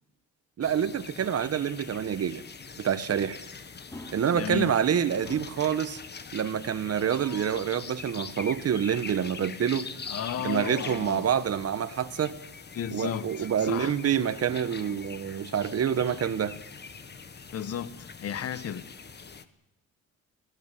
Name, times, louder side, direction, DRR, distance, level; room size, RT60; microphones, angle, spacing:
sound 1, 0.6-19.4, left 5 dB, 35° left, 1.5 m, -43 dB
voice 1, 0.6-2.4 2.8-3.4 4.1-6.0 6.3-9.9 10.4-12.4 12.9-16.6, right 8 dB, 55° right, 1.5 m, -27 dB
sound 2, 3.9-4.8 5.2-5.7 6.9-7.7 10.3-11.4 12.8-13.0 13.3-13.4 15.0-16.2, left 2 dB, 10° left, 3.7 m, -49 dB
voice 2, 4.4-4.7 10.1-11.3 12.7-13.9 17.5-18.9, left 8 dB, 55° left, 1.2 m, -34 dB
25.5 x 17.5 x 7.5 m
cardioid pair, 90°, 30 cm